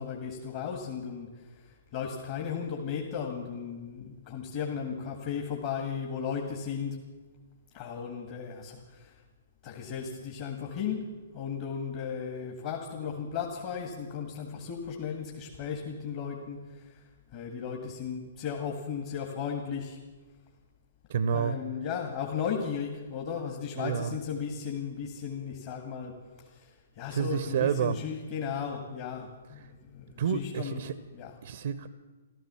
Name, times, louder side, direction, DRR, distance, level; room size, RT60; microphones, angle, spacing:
voice 1, 0.0-7.0 7.7-9.1 9.6-16.9 17.3-20.0 21.3-26.1 26.4-30.8 31.1-31.3, left 7 dB, 40° left, 1 dB, 2.0 m, -35 dB
voice 2, 21.1-21.6 23.8-24.2 27.1-28.0 30.2-31.0 31.4-31.9, right 8 dB, 60° right, 14 dB, 0.7 m, -29 dB
14.0 x 13.0 x 7.0 m, 1.3 s
figure-of-eight pair, 120°, 0 cm